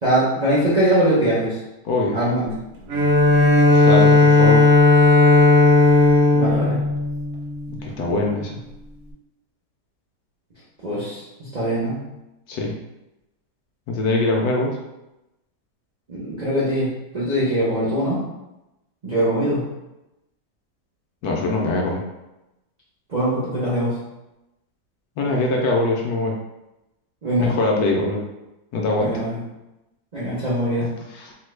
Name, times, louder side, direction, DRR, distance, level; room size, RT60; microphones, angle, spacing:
voice 1, 0.0-1.6 2.1-2.5 6.3-6.8 10.8-12.0 16.1-16.9 17.1-18.2 19.0-19.6 23.1-24.0 27.2-27.5 29.0-29.4 30.1-30.9, right 1 dB, 85° right, -8 dB, 0.3 m, -22 dB
voice 2, 1.8-2.2 3.7-4.6 7.7-8.5 12.5-12.8 13.9-14.8 21.2-22.0 25.2-26.3 27.4-28.2 28.7-29.1 31.1-31.3, left 2 dB, 70° left, 0 dB, 1.0 m, -22 dB
Bowed string instrument, 2.9-8.0, left 3 dB, 65° right, 0.8 m, -15 dB
3.1 x 2.2 x 3.1 m, 0.95 s
omnidirectional pair, 1.9 m